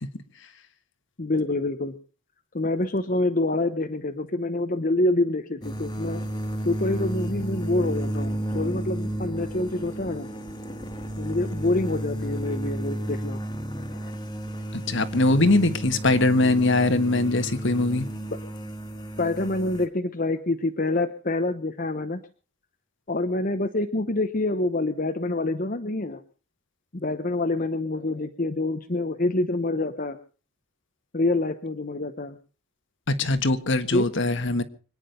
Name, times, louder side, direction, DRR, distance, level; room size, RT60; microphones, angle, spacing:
voice 1, 1.2-2.0 2.5-6.3 6.6-10.3 11.2-13.4 14.0-14.1 19.2-22.2 23.1-26.2 26.9-30.2 31.1-32.4 33.9-34.1, left 2 dB, 40° left, 6 dB, 1.0 m, -26 dB
sound 1, 5.6-19.9, right 1 dB, 20° left, 1.9 m, -32 dB
voice 2, 14.7-18.1 33.1-34.6, left 2 dB, 55° left, 11 dB, 1.5 m, -22 dB
25.5 x 10.0 x 5.3 m, 0.38 s
head